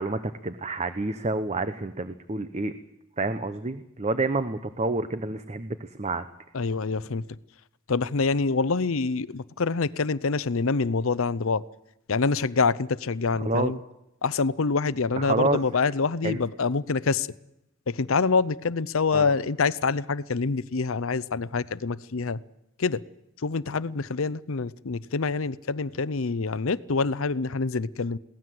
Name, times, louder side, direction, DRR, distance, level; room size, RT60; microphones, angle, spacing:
voice 1, 0.0-2.7 3.2-6.3 13.4-13.7 15.2-15.6 16.2-16.4 19.1-19.3, right 2 dB, 30° right, 0.9 m, -28 dB
voice 2, 6.5-7.2 7.9-11.6 12.1-13.8 14.2-17.3 17.9-22.4 22.8-23.0 23.4-28.2, left 4 dB, 70° left, 0.7 m, -26 dB
22.5 x 17.5 x 7.8 m
head